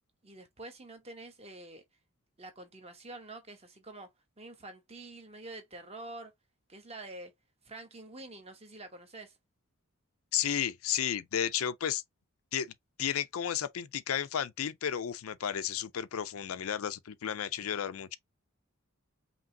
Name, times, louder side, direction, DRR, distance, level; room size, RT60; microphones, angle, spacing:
voice 1, 0.2-1.8 2.4-4.1 4.4-6.3 6.7-7.3 7.6-9.4 17.6-17.7, right 2 dB, 30° right, 1.1 m, -47 dB
voice 2, 10.3-12.0 12.5-12.7 13.0-18.2, left 9 dB, 80° left, 0.4 m, -33 dB
5.1 x 3.0 x 2.7 m
head